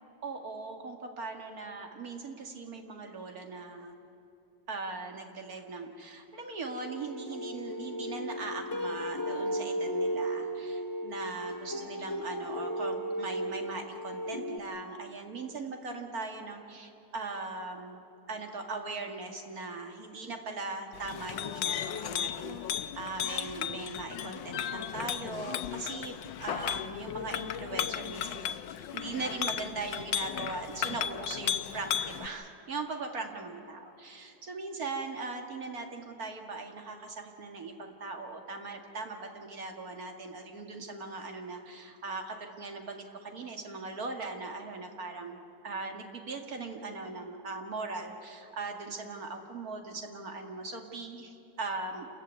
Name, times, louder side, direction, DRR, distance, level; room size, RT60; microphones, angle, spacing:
voice 1, 0.2-4.0 4.7-22.6 23.0-28.7 28.9-45.4 45.6-52.1, right 3 dB, 55° right, 3 dB, 2.4 m, -39 dB
sound 1, 6.7-14.6, equal, 15° left, 1.1 m, -35 dB
Chink clink, 20.9-32.3, left 10 dB, 85° left, 1.4 m, -35 dB
28.0 x 14.5 x 9.3 m, 2.8 s
omnidirectional pair, 2.0 m